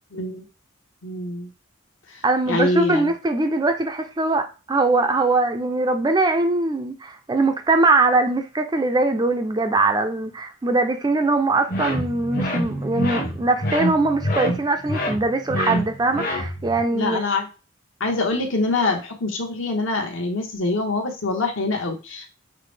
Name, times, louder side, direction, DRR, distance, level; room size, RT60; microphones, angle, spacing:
voice 1, 0.1-0.4 1.0-1.5 2.5-3.1 16.9-17.5 18.0-22.3, left 2 dB, 70° left, 1.0 m, -24 dB
voice 2, 2.2-17.2, right 2 dB, 20° right, 0.3 m, -21 dB
sound 1, 11.7-16.8, equal, 40° left, 0.9 m, -26 dB
5.7 x 2.0 x 3.2 m
head